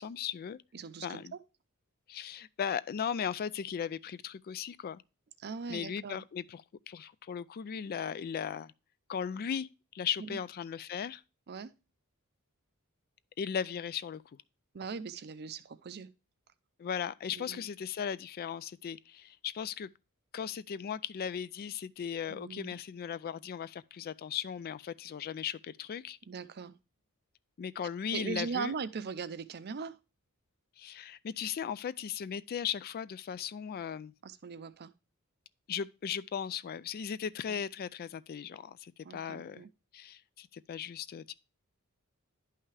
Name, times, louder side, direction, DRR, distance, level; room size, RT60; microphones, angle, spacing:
voice 1, 0.0-0.6 1.0-1.3 2.1-5.0 5.7-6.6 6.9-8.7 9.1-11.2 13.4-14.2 16.8-19.9 20.3-26.2 27.6-28.7 30.8-34.1 35.7-39.6 39.9-41.3, left 8 dB, 45° left, 0.3 m, -37 dB
voice 2, 0.7-1.4 5.4-6.3 10.3-10.4 11.5-11.7 14.7-16.1 17.4-17.6 22.3-22.8 26.3-26.8 28.1-30.0 34.2-34.9 37.5-37.6 39.0-39.7, right 5 dB, 50° right, 0.5 m, -40 dB
10.5 x 5.6 x 3.2 m
head